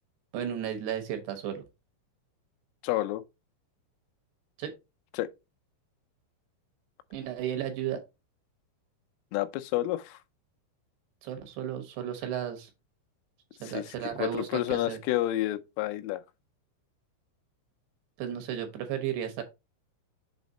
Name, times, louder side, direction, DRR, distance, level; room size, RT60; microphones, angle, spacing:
voice 1, 0.3-1.6 4.6-4.7 7.1-8.0 11.2-12.7 13.6-15.0 18.2-19.4, right 9 dB, 70° right, 2.7 m, -34 dB
voice 2, 2.8-3.2 5.1-5.3 9.3-10.2 13.6-13.8 14.2-16.2, left 15 dB, 85° left, 3.2 m, -29 dB
7.2 x 4.2 x 3.9 m
omnidirectional pair, 5.7 m